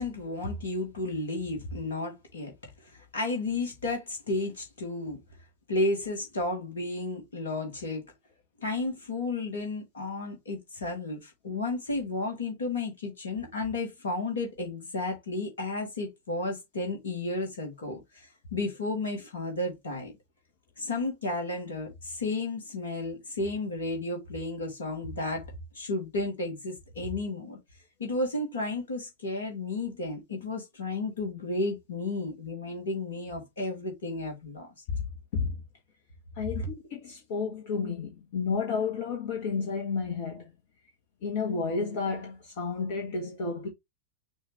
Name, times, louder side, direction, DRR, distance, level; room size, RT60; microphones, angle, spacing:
voice 1, 0.0-2.5 2.8-5.2 5.7-8.0 8.6-20.1 20.8-25.5 25.7-27.6 28.0-34.7, left 2 dB, 65° left, 1.6 m, -33 dB
voice 2, 36.4-40.5 41.2-43.7, left 5 dB, 50° left, 1.1 m, -31 dB
6.2 x 2.5 x 3.0 m
figure-of-eight pair, 90°, 0 cm